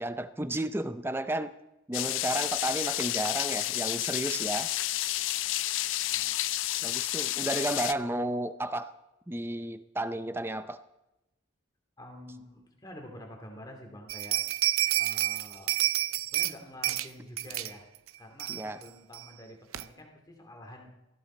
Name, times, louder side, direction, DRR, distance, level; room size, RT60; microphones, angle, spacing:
voice 1, 0.0-1.5 1.9-4.7 6.8-8.9 9.3-10.8 18.5-18.8, right 1 dB, 10° right, 12 dB, 0.5 m, -32 dB
sound 1, 1.9-7.9, left 15 dB, 70° left, 0.4 m, -30 dB
voice 2, 6.1-6.4 12.0-14.4 15.0-15.8 16.1-17.8 18.2-20.9, left 1 dB, 20° left, 2 dB, 2.3 m, -48 dB
sound 2, 14.1-16.5 16.8-17.1 17.4-17.7 18.1-18.2 18.4-18.8 19.1-19.2 19.7-19.8, right 14 dB, 85° right, 0.5 m, -29 dB
17.0 x 14.5 x 4.3 m, 0.95 s
head